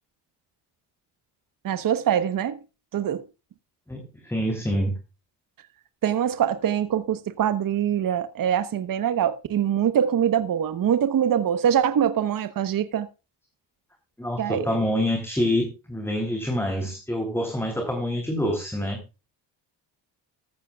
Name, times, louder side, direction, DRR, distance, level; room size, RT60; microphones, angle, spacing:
voice 1, 1.6-2.6 2.9-3.2 6.0-13.1 14.4-14.8, right 9 dB, 50° right, 1.1 m, -23 dB
voice 2, 3.9-4.9 14.2-19.0, equal, 5° left, 3.2 m, -26 dB
14.5 x 13.5 x 2.4 m
cardioid pair, 100°, 43 cm